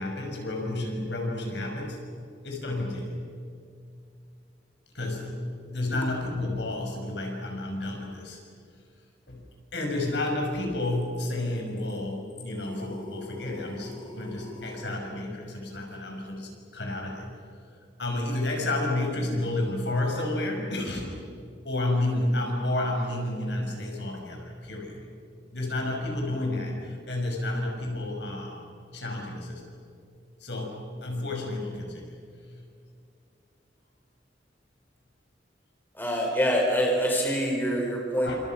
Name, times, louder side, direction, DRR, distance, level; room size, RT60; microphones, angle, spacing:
voice 1, 0.0-2.0 2.4-3.2 4.9-8.4 9.3-9.4 9.7-17.3 18.0-21.1 21.6-25.0 25.5-28.7 28.9-29.6 30.4-32.1 38.2-38.4, left 1 dB, 65° left, 1 dB, 6.1 m, -31 dB
sound 1, 12.6-15.0, left 1 dB, 30° left, 4.0 m, -44 dB
voice 2, 35.9-38.4, equal, 10° left, 0 dB, 4.5 m, -25 dB
29.5 x 27.5 x 6.0 m, 2.3 s
head